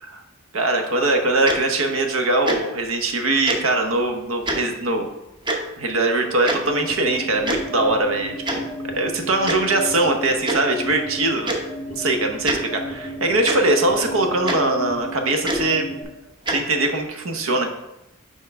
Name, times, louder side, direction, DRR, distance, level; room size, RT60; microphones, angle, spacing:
voice 1, 0.5-5.1 5.8-8.7 8.9-11.5 11.9-15.9 16.5-17.7, right 2 dB, 80° right, 5 dB, 0.9 m, -21 dB
Tick-tock, 1.5-1.6 2.4-2.6 3.5-3.6 4.4-4.6 5.5-5.6 6.5-6.6 7.4-7.6 8.5-8.6 9.5-9.6 10.4-10.6 11.5-11.6 12.4-12.6 13.5-13.6 14.5-14.6 15.4-15.6 16.5-16.6, right 2 dB, 25° right, 0.8 m, -23 dB
sound 1, 6.6-16.0, equal, 40° right, 1.7 m, -34 dB
5.5 x 4.6 x 4.7 m, 0.90 s
head